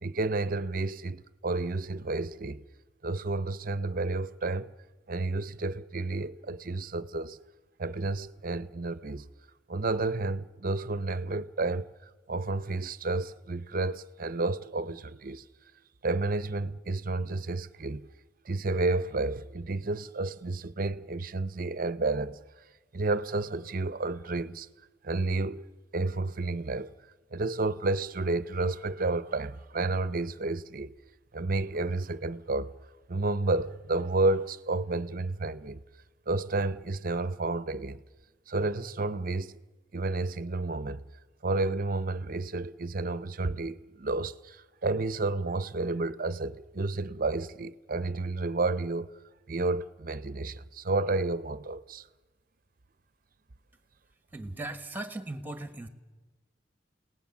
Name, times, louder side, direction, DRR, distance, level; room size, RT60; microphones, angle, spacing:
voice 1, 0.0-2.6 3.0-4.7 5.1-7.4 7.8-9.3 9.7-11.9 12.3-15.4 16.0-18.1 18.5-22.4 22.9-24.7 25.0-25.7 25.9-26.9 27.3-31.0 31.3-32.7 33.1-35.8 36.3-38.0 38.5-39.6 39.9-41.0 41.4-49.1 49.5-52.1, right 2 dB, 50° right, 0.7 m, -31 dB
voice 2, 54.3-55.9, right 2 dB, 10° right, 1.4 m, -38 dB
29.5 x 18.0 x 7.2 m
head